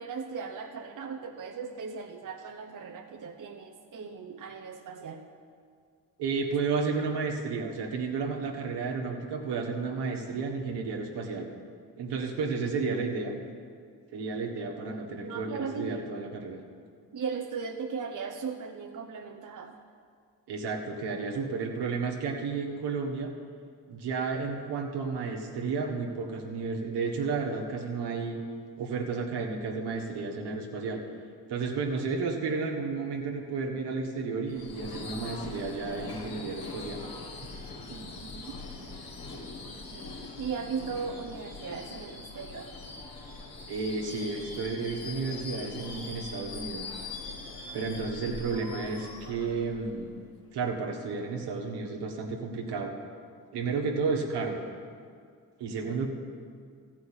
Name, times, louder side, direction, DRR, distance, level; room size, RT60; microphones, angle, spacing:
voice 1, 0.0-5.3 15.2-16.0 17.1-19.8 37.9-38.5 40.4-42.7, right 5 dB, 50° right, 3 dB, 1.0 m, -37 dB
voice 2, 6.2-11.5 12.0-13.3 14.1-16.6 20.5-23.3 23.9-28.4 28.8-31.0 31.5-37.0 43.7-46.8 47.7-50.1 50.5-52.9 53.5-54.6 55.6-56.1, right 4 dB, 75° right, 1 dB, 1.7 m, -32 dB
Subway metro underground / Screech, 34.5-50.4, left 3 dB, 60° left, 2.3 m, -42 dB
14.5 x 5.6 x 8.9 m, 2.1 s
supercardioid pair, 50°, 40 cm